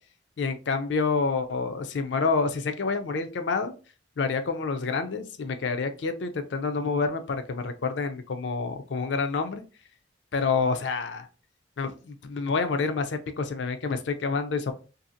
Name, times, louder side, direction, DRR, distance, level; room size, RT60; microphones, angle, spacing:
voice 1, 0.4-3.7 4.2-9.6 10.3-11.3 11.8-14.7, left 4 dB, 70° left, 8 dB, 0.4 m, -28 dB
2.6 x 2.4 x 2.6 m, 0.34 s
head